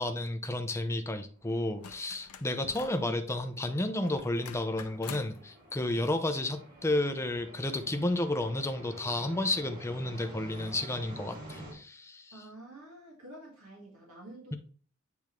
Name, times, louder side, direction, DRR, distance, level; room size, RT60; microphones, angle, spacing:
voice 1, 0.0-12.3, left 1 dB, 10° left, 7 dB, 0.6 m, -32 dB
sound 1, 1.4-11.7, right 1 dB, 40° right, 2.3 m, -50 dB
sound 2, 1.8-3.1 4.1-5.4 7.1-7.2, left 6 dB, 90° left, 0.6 m, -46 dB
voice 2, 2.5-3.3 5.9-6.1 12.3-14.6, right 2 dB, 80° right, -2 dB, 1.7 m, -49 dB
8.5 x 3.6 x 3.1 m, 0.41 s
head